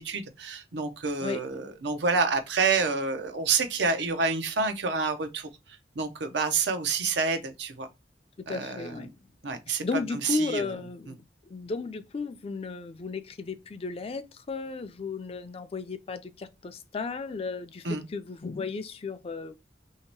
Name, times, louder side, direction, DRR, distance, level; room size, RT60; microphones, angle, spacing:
voice 1, 0.0-7.9 8.5-9.1 9.4-9.8 10.1-10.7 11.1-11.2 17.8-18.0, right 4 dB, 80° right, 0.7 m, -28 dB
voice 2, 8.4-9.2 9.8-11.2 11.5-19.6, left 4 dB, 35° left, 0.4 m, -34 dB
3.0 x 2.8 x 4.4 m
head